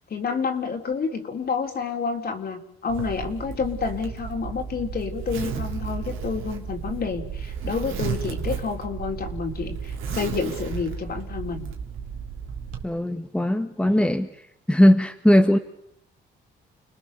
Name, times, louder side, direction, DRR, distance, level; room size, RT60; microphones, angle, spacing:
voice 1, 0.1-11.7, left 5 dB, 50° left, 3 dB, 3.8 m, -29 dB
Zipper (clothing), 2.9-12.8, right 7 dB, 90° right, 2.9 m, -33 dB
voice 2, 12.8-14.3 14.7-15.6, equal, 5° left, 6 dB, 1.6 m, -19 dB
30.0 x 20.0 x 6.9 m, 0.78 s
cardioid pair, 90°, 20 cm